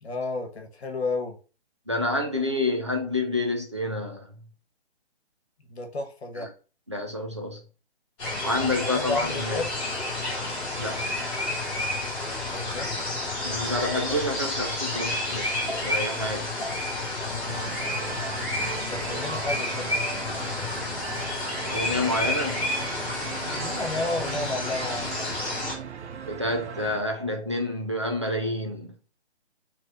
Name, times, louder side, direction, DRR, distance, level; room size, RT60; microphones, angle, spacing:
voice 1, 0.0-1.4 5.6-6.5 8.5-9.7 12.5-12.9 17.3-17.8 18.7-20.3 23.6-25.1, left 2 dB, 70° left, 1.2 m, -32 dB
voice 2, 1.9-4.3 6.4-6.5 6.9-7.6 8.4-9.6 10.8-11.1 13.4-16.5 21.7-22.7 26.3-28.9, left 1 dB, 30° right, 0.4 m, -28 dB
sound 1, 8.2-25.7, left 2 dB, 10° left, 0.9 m, -30 dB
sound 2, 17.4-27.0, right 7 dB, 85° right, 0.6 m, -38 dB
3.2 x 2.6 x 4.4 m
hypercardioid pair, 170°, 33 cm